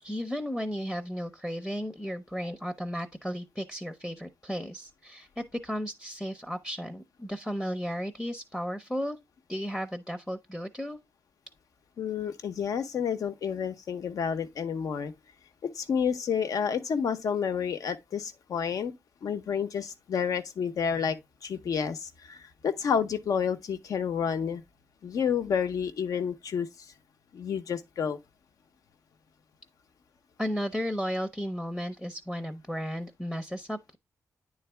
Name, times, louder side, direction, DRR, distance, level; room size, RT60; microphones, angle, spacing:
voice 1, 0.0-9.2 9.5-11.0 30.4-34.0, equal, 5° left, 0.6 m, -34 dB
voice 2, 12.0-15.1 15.6-18.9 19.2-21.2 21.4-24.6 25.0-26.7 27.3-28.2, left 7 dB, 80° left, 0.8 m, -30 dB
9.7 x 3.9 x 3.3 m
wide cardioid pair, 150°, 6 cm